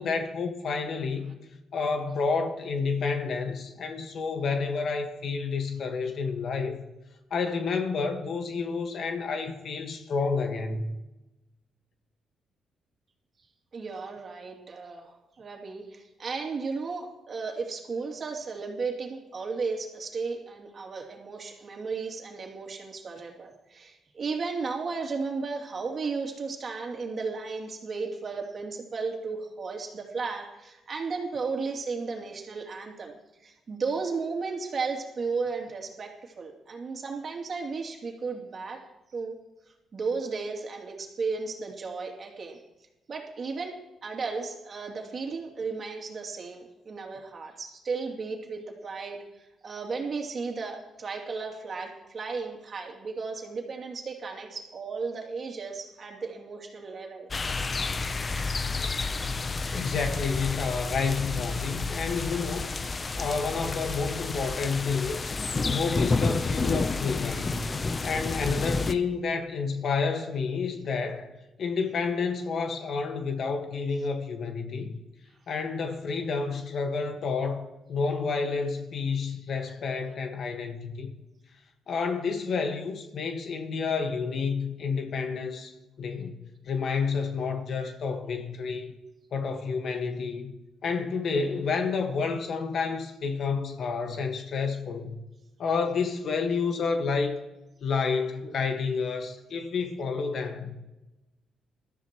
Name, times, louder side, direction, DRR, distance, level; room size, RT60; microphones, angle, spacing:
voice 1, 0.0-1.4 1.7-6.8 7.3-10.9 59.7-62.7 63.2-65.3 65.7-67.7 68.0-71.3 71.6-75.0 75.5-81.1 81.9-85.7 86.0-86.3 86.6-88.9 89.3-90.5 90.8-95.2 95.6-97.4 97.8-100.8, left 5 dB, 60° left, 5 dB, 1.6 m, -29 dB
voice 2, 13.7-38.8 39.1-39.4 39.9-42.6 43.1-57.3, right 4 dB, 45° right, 1 dB, 2.7 m, -34 dB
sound 1, 57.3-68.9, left 3 dB, 30° left, 0.7 m, -30 dB
21.0 x 13.5 x 3.1 m, 1.0 s
cardioid pair, 95°, 0 cm